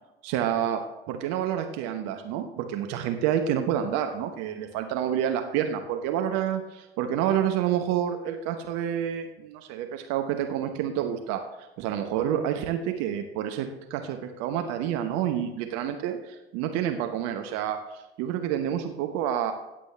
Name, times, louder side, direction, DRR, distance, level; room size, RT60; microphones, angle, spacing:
voice 1, 0.2-11.4 11.8-19.5, right 10 dB, 55° right, 6 dB, 1.1 m, -28 dB
17.0 x 7.6 x 3.4 m, 1.0 s
figure-of-eight pair, 65°, 31 cm